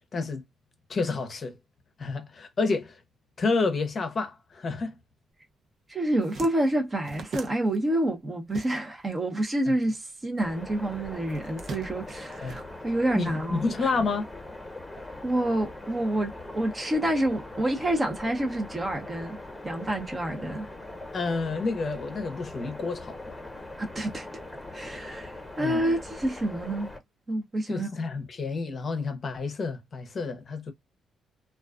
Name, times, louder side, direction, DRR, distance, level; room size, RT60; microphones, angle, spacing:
voice 1, 0.1-0.4 0.9-1.6 2.0-3.0 3.4-4.9 9.7-9.8 12.4-12.6 13.1-14.3 21.1-23.4 25.6-25.8 27.7-30.7, left 4 dB, 45° left, 0.6 m, -29 dB
sound 1, 5.6-5.7 6.0-9.2 9.4-10.6 11.3-13.3, right 4 dB, 60° right, 0.6 m, -42 dB
voice 2, 5.9-13.6 15.2-19.4 19.6-20.6 23.8-24.3 24.7-26.9 27.3-27.9, right 1 dB, 25° right, 0.8 m, -28 dB
sound 2, 10.4-27.0, left 2 dB, 10° left, 1.0 m, -41 dB
2.3 x 2.3 x 2.3 m
cardioid pair, 90°, 0 cm